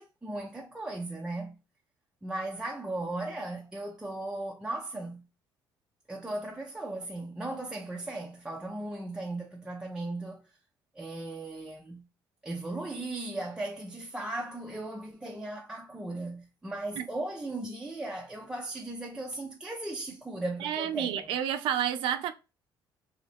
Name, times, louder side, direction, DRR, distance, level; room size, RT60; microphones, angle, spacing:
voice 1, 0.0-1.6 2.2-5.3 6.1-10.6 10.9-12.1 12.4-21.3, right 2 dB, 10° right, 0.4 m, -37 dB
voice 2, 20.6-22.3, right 10 dB, 80° right, 0.5 m, -30 dB
2.7 x 2.5 x 3.2 m
cardioid pair, 120°, 9 cm